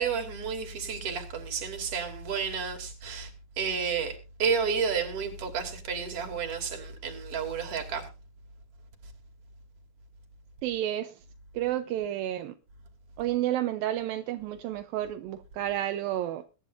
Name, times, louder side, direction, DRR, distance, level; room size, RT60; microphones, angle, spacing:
voice 1, 0.0-3.3 3.6-8.1, right 6 dB, 45° right, 3.4 m, -31 dB
voice 2, 10.6-11.2 11.5-12.5 13.2-16.4, right 13 dB, 80° right, 2.5 m, -31 dB
22.0 x 10.5 x 2.6 m
omnidirectional pair, 4.1 m